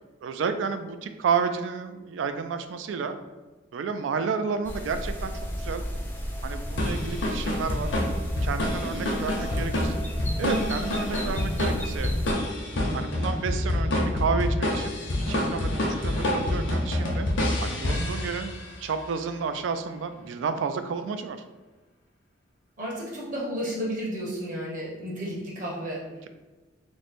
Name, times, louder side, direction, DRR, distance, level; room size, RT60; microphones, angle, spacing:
voice 1, 0.2-3.1 3.7-5.8 6.4-8.0 8.4-9.9 10.4-12.1 12.9-17.3 17.6-18.5 18.8-21.4, right 5 dB, 90° right, 9 dB, 0.3 m, -31 dB
sound 1, 4.6-12.3, equal, 10° left, 0.4 m, -34 dB
sound 2, 6.8-18.7, left 1 dB, 80° left, 0.7 m, -27 dB
voice 2, 9.4-9.7 10.4-10.7 22.8-26.1, equal, 45° right, -5 dB, 1.1 m, -33 dB
3.1 x 2.1 x 4.1 m, 1.2 s
head